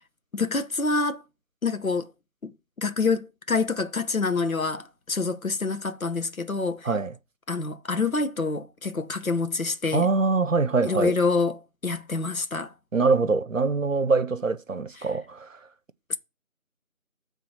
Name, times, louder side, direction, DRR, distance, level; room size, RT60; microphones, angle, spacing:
voice 1, 0.3-1.2 1.6-2.1 2.4-6.9 7.5-10.1 10.8-12.7 16.1-16.2, left 4 dB, 75° left, 1.2 m, -27 dB
voice 2, 9.9-11.2 12.9-15.6, right 4 dB, 65° right, 0.9 m, -24 dB
8.3 x 4.0 x 6.3 m
figure-of-eight pair, 165°, 41 cm